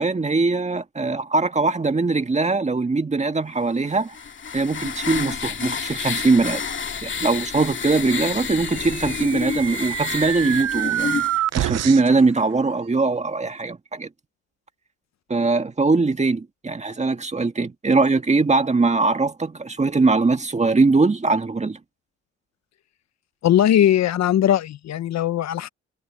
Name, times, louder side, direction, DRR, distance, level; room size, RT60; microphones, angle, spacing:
voice 1, 0.0-4.2 4.5-6.6 7.0-11.3 11.5-14.1 15.3-21.8, right 3 dB, 20° right, 1.9 m, -21 dB
sound 1, 3.9-11.4, left 6 dB, 40° left, 2.4 m, -30 dB
sound 2, 8.6-12.2, right 12 dB, 60° right, 0.7 m, -27 dB
voice 2, 23.4-25.7, left 11 dB, 60° left, 0.8 m, -19 dB
cardioid pair, 90°, 30 cm